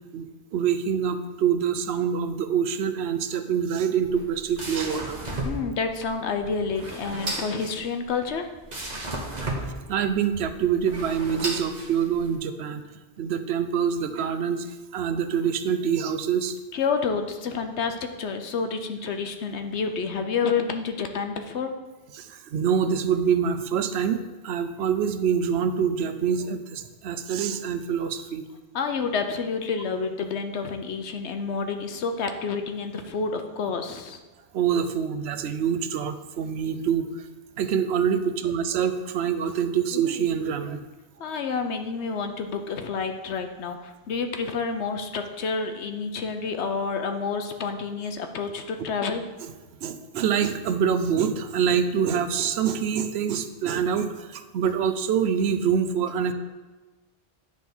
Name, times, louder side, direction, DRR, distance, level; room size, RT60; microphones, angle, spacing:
voice 1, 0.5-5.2 9.6-12.8 13.2-14.7 14.9-16.6 22.2-28.4 34.5-37.2 37.6-40.8 49.8-56.3, right 7 dB, 75° right, 10 dB, 0.8 m, -25 dB
sound 1, 4.0-12.3, right 2 dB, 40° right, 1.2 m, -34 dB
voice 2, 5.4-8.5 16.7-21.7 28.7-34.2 41.2-49.2, left 5 dB, 85° left, 6 dB, 1.1 m, -29 dB
9.8 x 3.6 x 6.0 m, 1.2 s
omnidirectional pair, 1.1 m